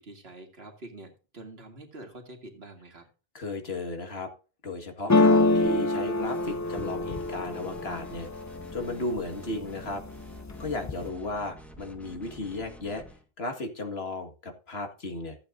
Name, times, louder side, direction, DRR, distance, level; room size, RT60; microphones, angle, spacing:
voice 1, 0.0-3.1, right 2 dB, 75° right, 4 dB, 2.3 m, -46 dB
voice 2, 3.3-4.3 4.6-8.3 8.7-10.0 10.6-13.0 13.4-15.4, left 2 dB, 80° left, 4 dB, 2.1 m, -35 dB
sound 1, 5.1-9.0 9.4-10.0 10.3-11.1, left 2 dB, 25° left, 0.4 m, -25 dB
sound 2, 6.2-13.2, left 1 dB, ahead, 1.5 m, -47 dB
14.5 x 8.5 x 2.6 m, 0.35 s
omnidirectional pair, 1.0 m